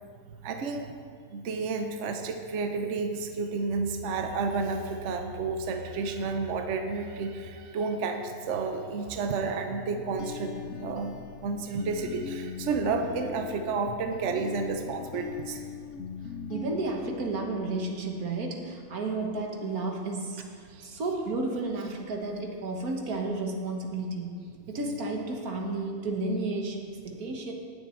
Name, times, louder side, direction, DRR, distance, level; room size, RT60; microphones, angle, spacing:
voice 1, 0.4-0.9 1.3-10.5 10.8-15.7 20.7-20.9, right 4 dB, 60° right, 5 dB, 1.0 m, -31 dB
sound 1, 9.7-18.4, left 7 dB, 60° left, 0.9 m, -40 dB
voice 2, 16.5-24.4 24.7-27.5, right 2 dB, 85° right, 1 dB, 1.8 m, -32 dB
18.0 x 6.7 x 4.4 m, 2.2 s
omnidirectional pair, 1.5 m